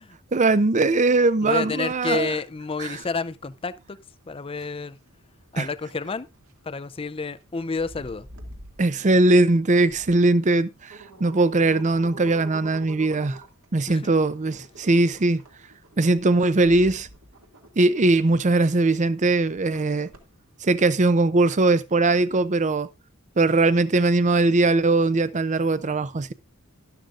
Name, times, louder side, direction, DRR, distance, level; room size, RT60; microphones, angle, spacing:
voice 1, 0.3-2.3 2.8-3.0 5.6-5.7 8.8-13.4 13.7-15.4 16.0-17.1 17.8-20.1 20.6-22.9 23.4-26.3, right 2 dB, 35° right, 0.6 m, -20 dB
voice 2, 1.4-4.0 4.3-5.0 5.5-6.3 6.6-8.3 13.9-14.1, left 4 dB, 25° left, 0.5 m, -30 dB
sound 1, 2.2-20.8, right 2 dB, 70° right, 2.1 m, -48 dB
11.5 x 11.5 x 2.5 m
head